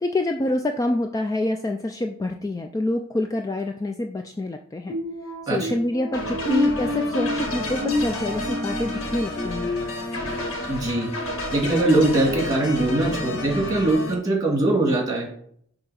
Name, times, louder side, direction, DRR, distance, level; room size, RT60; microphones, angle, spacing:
voice 1, 0.0-5.0 5.5-9.7, left 1 dB, 15° left, 4 dB, 0.3 m, -26 dB
sound 1, 4.9-10.5 11.0-11.3 11.8-12.0, left 2 dB, 60° left, 1.9 m, -29 dB
sound 2, 6.1-14.1, left 1 dB, 80° left, 1.7 m, -31 dB
voice 2, 10.7-11.1 11.5-15.3, right 2 dB, 20° right, -1 dB, 1.9 m, -21 dB
6.6 x 2.8 x 5.6 m, 0.66 s
head